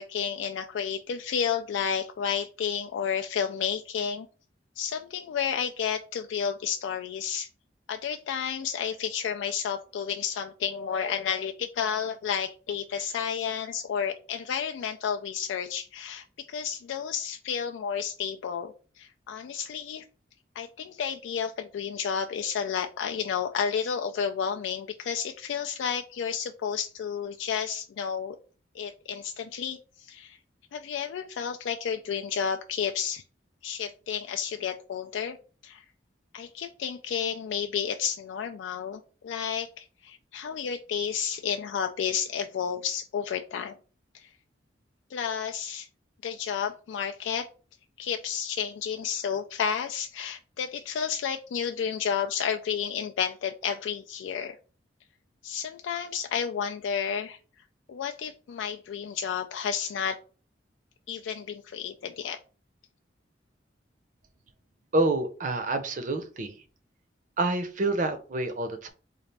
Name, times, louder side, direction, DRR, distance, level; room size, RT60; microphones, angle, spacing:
voice 1, 0.0-4.3 4.8-7.5 7.9-20.0 20.6-28.4 28.7-30.4 30.7-33.2 33.6-35.4 35.6-35.8 36.3-43.7 44.1-44.3 45.1-45.9 46.2-47.5 48.0-54.6 55.4-57.4 57.9-60.2 61.1-62.4, left 7 dB, 85° left, 5 dB, 0.3 m, -31 dB
voice 2, 64.9-66.5 67.4-68.9, right 2 dB, 45° right, 8 dB, 0.6 m, -27 dB
4.0 x 2.4 x 3.3 m, 0.37 s
head